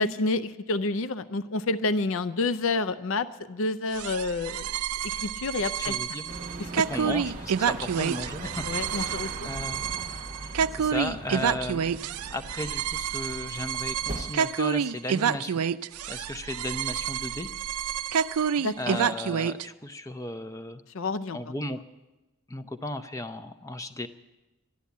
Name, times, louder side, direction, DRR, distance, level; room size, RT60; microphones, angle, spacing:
voice 1, 0.0-4.7 5.0-6.0 6.6-6.7 7.0-7.1 8.6-9.5 18.6-19.1 20.9-21.4, left 3 dB, 65° left, 13 dB, 0.5 m, -29 dB
sound 1, 3.9-19.6, right 7 dB, 90° right, 0.4 m, -29 dB
voice 2, 5.6-6.3 6.9-8.6 8.9-9.2 9.4-9.8 10.4-11.9 12.3-15.6 16.1-17.5 18.8-20.8 21.3-21.8 22.5-24.1, left 1 dB, 15° left, 10 dB, 0.6 m, -35 dB
sound 2, 6.3-14.3, right 2 dB, 35° right, 0.9 m, -40 dB
13.0 x 12.0 x 8.3 m, 1.1 s
head